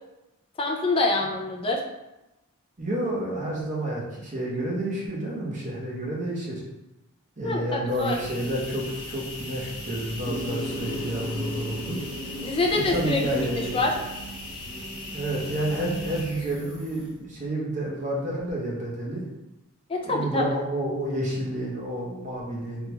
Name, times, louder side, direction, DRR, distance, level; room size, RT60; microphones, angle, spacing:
voice 1, 0.6-1.8 7.4-8.1 12.4-13.2 13.7-13.9 19.9-20.4, left 3 dB, 25° left, 0 dB, 0.4 m, -25 dB
voice 2, 2.8-6.6 7.4-12.0 12.7-13.9 15.1-19.2 20.0-22.9, right 1 dB, 35° right, -5 dB, 1.0 m, -30 dB
sound 1, 7.9-17.2, equal, 75° left, 0.9 m, -38 dB
Insect, 10.2-15.2, left 1 dB, 5° right, 0.8 m, -36 dB
3.6 x 2.3 x 3.0 m, 0.97 s
head